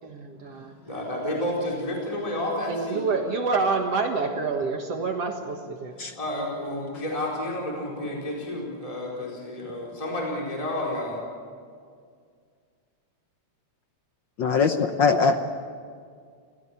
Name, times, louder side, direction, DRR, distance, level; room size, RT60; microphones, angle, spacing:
voice 1, 0.0-0.7 2.7-6.0, right 4 dB, 60° right, 3 dB, 2.5 m, -27 dB
voice 2, 0.8-3.0 6.1-11.2, left 1 dB, 10° left, -3 dB, 4.4 m, -30 dB
voice 3, 14.4-15.4, left 5 dB, 75° left, 7 dB, 1.0 m, -21 dB
29.0 x 16.5 x 8.5 m, 2.1 s
omnidirectional pair, 3.4 m